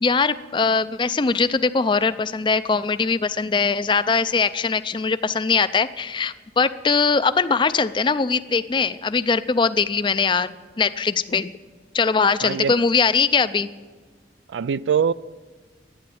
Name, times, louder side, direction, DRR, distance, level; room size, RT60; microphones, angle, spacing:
voice 1, 0.0-11.5 11.9-13.7, left 5 dB, 25° left, 14 dB, 0.4 m, -21 dB
voice 2, 12.4-12.7 14.5-15.1, right 7 dB, 85° right, 19 dB, 0.4 m, -22 dB
11.5 x 9.3 x 8.5 m, 1.5 s
head